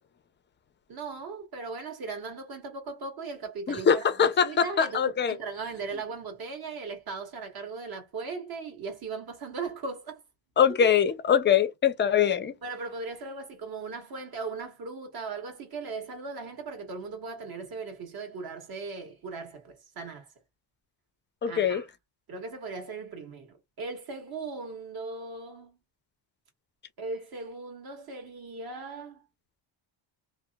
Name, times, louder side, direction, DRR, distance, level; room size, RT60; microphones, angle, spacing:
voice 1, 0.9-4.1 4.4-10.2 12.6-20.3 21.5-21.9 22.3-25.8 27.0-29.2, right 4 dB, 50° right, 1.5 m, -38 dB
voice 2, 3.7-5.4 10.6-12.5 21.4-21.8, left 8 dB, 25° left, 0.4 m, -23 dB
2.8 x 2.0 x 2.2 m
cardioid pair, 110°, 48 cm